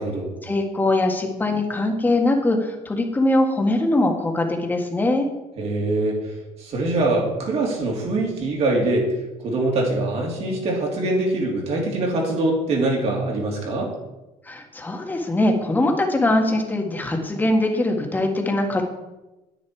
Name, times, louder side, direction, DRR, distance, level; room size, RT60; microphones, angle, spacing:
voice 1, 0.4-5.3 14.5-18.8, left 1 dB, 15° left, 3 dB, 1.7 m, -22 dB
voice 2, 5.6-6.2 6.6-9.1 9.4-13.9, right 2 dB, 50° right, -1 dB, 3.4 m, -23 dB
10.0 x 9.4 x 4.7 m, 1.0 s
cardioid pair, 135°, 13 cm